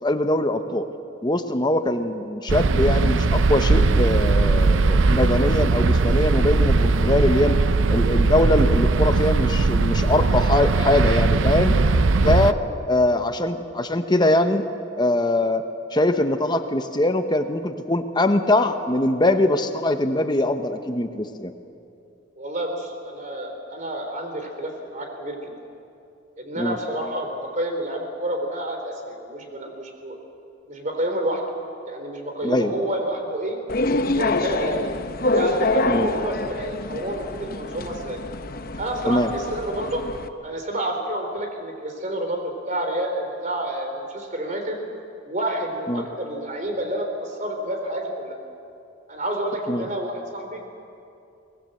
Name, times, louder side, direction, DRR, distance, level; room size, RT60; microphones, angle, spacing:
voice 1, 0.0-0.9 1.2-7.6 7.9-11.8 12.2-12.6 12.9-14.6 15.0-15.6 15.9-21.5 26.6-26.8 32.4-32.7 35.9-36.1 39.0-39.3 45.9-46.1 49.7-49.9, left 1 dB, 20° left, 7 dB, 1.0 m, -22 dB
sound 1, 2.5-12.5, right 3 dB, 80° right, 0.6 m, -19 dB
voice 2, 12.5-12.8 22.4-25.5 26.4-30.2 30.7-31.4 31.9-33.6 34.1-34.9 35.3-38.2 38.8-40.0 40.4-44.8 45.2-48.4 49.1-50.6, right 1 dB, 40° right, 4 dB, 3.6 m, -29 dB
sound 2, 33.7-40.3, left 2 dB, 50° left, 0.9 m, -26 dB
23.0 x 19.5 x 7.7 m, 2.6 s
head